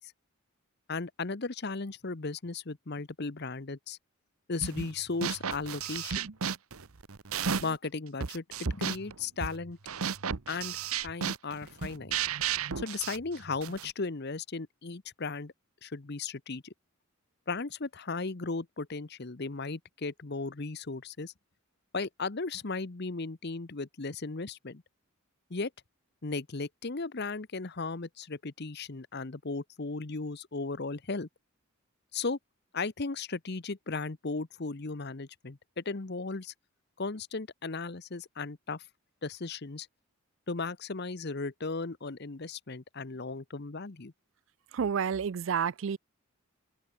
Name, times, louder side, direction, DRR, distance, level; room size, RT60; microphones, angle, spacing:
voice 1, 0.9-4.0 4.5-6.3 7.6-9.8 10.5-10.8 11.0-12.2 12.8-15.5 15.8-16.7 17.5-21.3 21.9-24.8 25.5-25.7 26.2-31.3 32.1-32.4 32.7-36.5 37.0-38.8 39.2-39.9 40.5-44.1, left 3 dB, 50° left, 0.9 m, -36 dB
sound 1, 4.6-4.9 5.2-7.8 8.2-13.9, right 7 dB, 80° right, 1.0 m, -34 dB
voice 2, 44.7-46.0, right 7 dB, 60° right, 0.4 m, -30 dB
open air
head